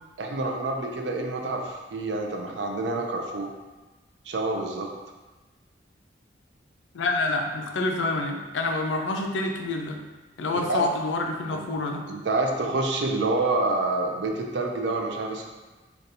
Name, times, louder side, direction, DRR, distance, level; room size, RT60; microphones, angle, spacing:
voice 1, 0.2-3.5 4.3-4.9 10.7-10.8 11.5-11.7 12.1-15.5, right 2 dB, 65° right, 2 dB, 0.4 m, -27 dB
voice 2, 6.9-10.0 10.4-12.1, left 2 dB, 85° left, 3 dB, 0.4 m, -27 dB
4.0 x 2.3 x 2.6 m, 1.2 s
head